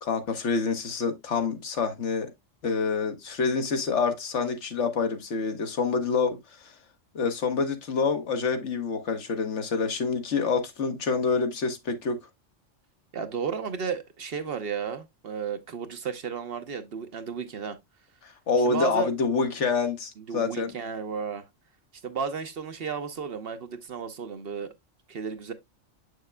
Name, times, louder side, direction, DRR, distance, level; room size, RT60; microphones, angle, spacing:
voice 1, 0.0-2.3 2.6-6.4 6.6-6.7 7.1-12.2 18.2-20.7, left 4 dB, 70° left, 1.4 m, -27 dB
voice 2, 13.1-17.8 18.6-19.1 20.3-21.4 22.0-24.7 25.1-25.5, right 6 dB, 55° right, 0.8 m, -33 dB
7.5 x 6.4 x 2.2 m
omnidirectional pair, 1.3 m